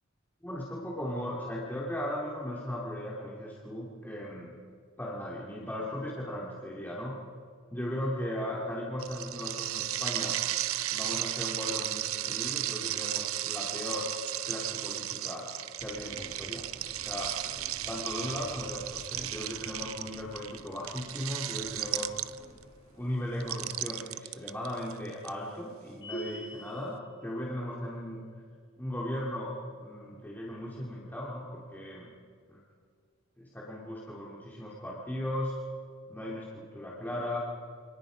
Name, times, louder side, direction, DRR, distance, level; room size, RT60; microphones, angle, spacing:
voice 1, 0.4-4.6 5.0-7.2 7.7-10.4 10.9-14.1 14.4-15.5 15.8-16.7 16.9-17.4 17.9-22.1 23.0-28.2 28.8-32.1 32.5-32.6 33.4-35.6 36.1-37.4, left 1 dB, 10° left, -5 dB, 2.6 m, -37 dB
sound 1, 9.0-22.6 23.4-25.3, right 13 dB, 75° right, 0.6 m, -35 dB
sound 2, 15.8-23.8, equal, 30° left, 3.3 m, -52 dB
sound 3, 26.0-26.9, right 1 dB, 60° left, 5.2 m, -40 dB
28.0 x 27.0 x 5.1 m, 2.2 s
head